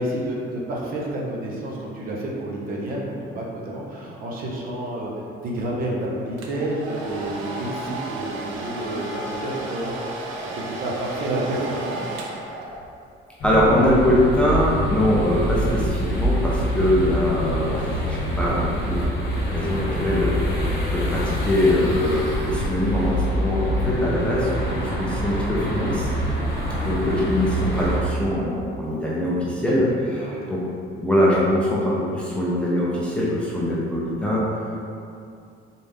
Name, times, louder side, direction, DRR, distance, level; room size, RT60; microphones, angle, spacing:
voice 1, 0.0-5.1 5.4-12.2 26.4-26.6 30.2-30.5, right 1 dB, 45° right, -3 dB, 0.8 m, -29 dB
Domestic sounds home sounds, 6.4-13.1, right 2 dB, 80° right, 0.6 m, -34 dB
sound 1, 13.4-28.0, equal, 50° left, 1.1 m, -25 dB
voice 2, 13.4-19.0 19.5-26.1 26.8-30.6 31.0-34.4, left 1 dB, 5° left, -7 dB, 0.6 m, -22 dB
4.1 x 3.5 x 3.5 m, 2.5 s
cardioid pair, 160°, 20 cm